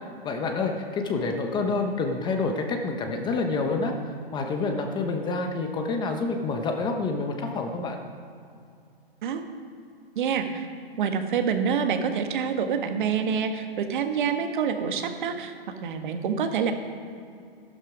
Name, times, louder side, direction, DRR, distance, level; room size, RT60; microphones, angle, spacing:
voice 1, 0.2-3.9 4.3-8.0, left 3 dB, 15° left, 4 dB, 0.9 m, -28 dB
voice 2, 10.1-10.7 11.0-16.7, right 6 dB, 55° right, 6 dB, 1.6 m, -27 dB
13.0 x 12.0 x 5.0 m, 2.4 s
hypercardioid pair, 135°, 30 cm